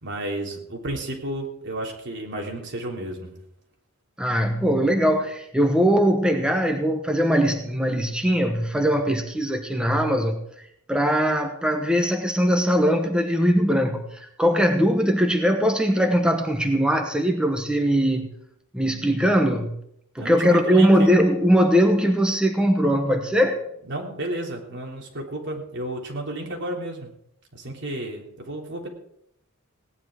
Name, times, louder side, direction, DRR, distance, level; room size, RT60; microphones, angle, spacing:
voice 1, 0.0-3.3 20.2-21.1 23.9-27.1 27.5-28.9, right 1 dB, 60° right, 1 dB, 3.4 m, -32 dB
voice 2, 4.2-10.4 10.9-18.3 18.7-19.7 20.1-23.6, equal, 5° right, 4 dB, 1.1 m, -21 dB
17.5 x 10.5 x 5.0 m, 0.75 s
head